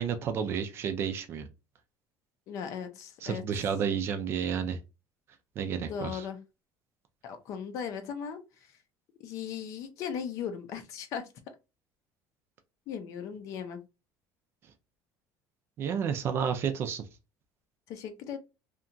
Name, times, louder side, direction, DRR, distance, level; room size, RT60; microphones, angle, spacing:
voice 1, 0.0-1.5 3.2-4.8 5.6-6.3 15.8-17.0, right 7 dB, 35° right, 0.3 m, -31 dB
voice 2, 2.5-3.4 5.9-6.4 7.2-8.4 9.2-11.2 12.9-13.8 17.9-18.4, left 7 dB, 45° left, 0.5 m, -37 dB
2.8 x 2.2 x 2.5 m
cardioid pair, 180°, 8 cm